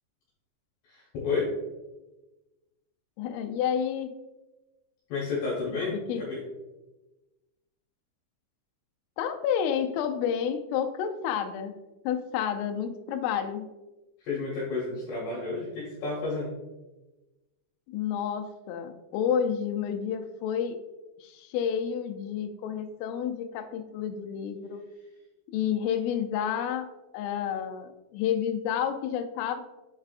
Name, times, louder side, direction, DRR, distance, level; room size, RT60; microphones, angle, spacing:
voice 1, 0.9-1.5 5.1-6.4 14.2-16.5, left 4 dB, 70° left, -6 dB, 3.2 m, -31 dB
voice 2, 3.2-4.1 5.9-6.2 9.2-11.8 12.0-13.7 17.9-20.8 21.2-24.8 25.5-29.6, left 8 dB, 90° left, 6 dB, 3.2 m, -30 dB
8.1 x 4.7 x 2.4 m, 1.1 s
omnidirectional pair, 5.7 m